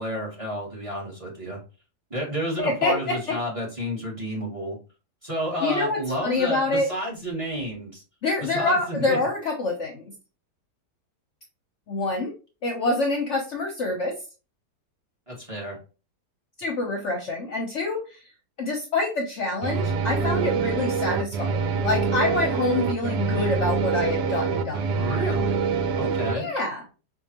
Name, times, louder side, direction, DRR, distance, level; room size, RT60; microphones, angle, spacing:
voice 1, 0.0-1.6 2.1-4.8 5.2-8.0 8.4-9.2 15.3-15.8 24.9-26.5, equal, 20° right, -2 dB, 1.3 m, -31 dB
voice 2, 2.6-3.4 5.6-6.9 8.2-10.0 11.9-12.3 12.6-14.1 16.6-18.2 18.6-24.8 26.3-26.8, left 2 dB, 55° left, 1 dB, 0.9 m, -26 dB
sound 1, 19.6-26.3, right 5 dB, 90° right, 1.2 m, -25 dB
4.5 x 2.6 x 2.8 m, 0.33 s
omnidirectional pair, 1.8 m